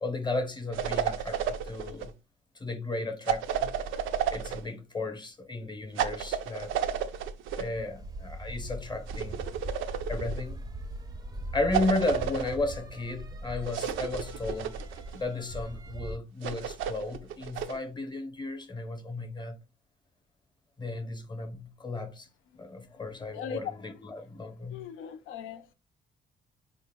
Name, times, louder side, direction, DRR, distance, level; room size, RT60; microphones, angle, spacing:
voice 1, 0.0-2.1 2.5-3.7 4.3-6.7 7.6-9.4 10.1-10.6 11.5-14.8 15.1-19.6 20.8-22.3 22.6-24.9, left 2 dB, 20° left, 0.7 m, -34 dB
sound 1, 0.7-2.1 3.3-4.7 6.0-7.7 9.1-10.4 11.7-12.6 13.7-15.2 16.4-17.8, right 9 dB, 80° right, 0.4 m, -32 dB
sound 2, 7.7-16.2, right 1 dB, 20° right, 0.5 m, -40 dB
voice 2, 24.7-25.7, left 7 dB, 90° left, 0.5 m, -39 dB
3.7 x 2.1 x 3.4 m
cardioid pair, 90°, 20 cm